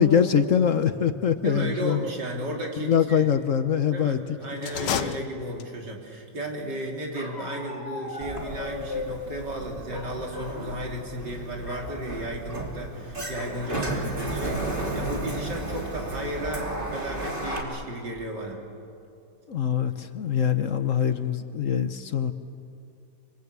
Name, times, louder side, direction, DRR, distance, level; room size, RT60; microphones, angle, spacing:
voice 1, 0.0-2.0 2.8-4.2 5.0-5.2 19.5-22.3, left 8 dB, 55° left, 10 dB, 1.2 m, -23 dB
voice 2, 1.4-3.3 3.9-14.6 14.9-18.6, right 1 dB, 85° right, 0 dB, 4.1 m, -34 dB
sound 1, 4.6-6.0, left 9 dB, 85° left, 1.5 m, -31 dB
Bark, 7.1-9.2 9.9-10.6 11.0-11.2 11.6-11.9 13.3-13.6 14.2-14.3 14.6-15.0, left 3 dB, 35° left, 4.2 m, -38 dB
Sliding door, 8.2-17.6, right 2 dB, 30° right, 3.1 m, -33 dB
26.5 x 25.5 x 8.3 m, 2.5 s
omnidirectional pair, 1.8 m